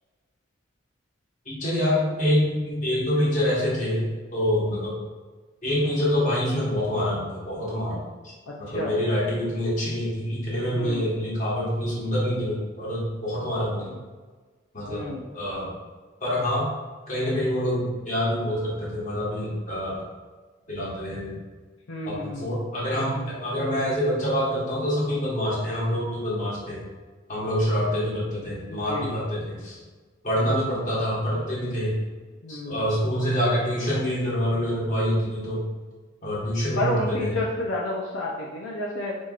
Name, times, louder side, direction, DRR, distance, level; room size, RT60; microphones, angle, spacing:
voice 1, 1.4-4.0 4.3-4.9 5.6-8.3 8.6-13.9 14.7-15.7 16.2-16.7 17.1-20.0 20.7-21.4 22.0-26.8 27.3-29.8 30.2-32.0 32.5-35.6 36.2-37.4, equal, 40° left, -6 dB, 1.4 m, -26 dB
voice 2, 8.5-8.9 10.7-11.0 14.9-15.2 21.9-22.5 28.7-29.2 32.4-32.8 36.8-39.2, left 1 dB, 75° left, -3 dB, 0.6 m, -30 dB
4.5 x 4.3 x 2.4 m, 1.4 s
head